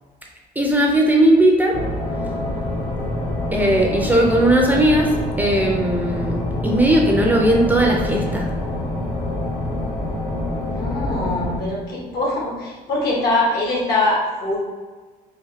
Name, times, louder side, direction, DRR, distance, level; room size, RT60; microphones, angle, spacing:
voice 1, 0.6-1.8 3.5-5.1 5.4-8.5, right 1 dB, 10° right, 0 dB, 0.5 m, -17 dB
sound 1, 1.7-11.6, left 1 dB, 40° left, 0.9 m, -26 dB
voice 2, 10.7-14.6, left 2 dB, 70° left, -3 dB, 1.5 m, -22 dB
4.1 x 2.2 x 4.0 m, 1.3 s
cardioid pair, 110°, 17 cm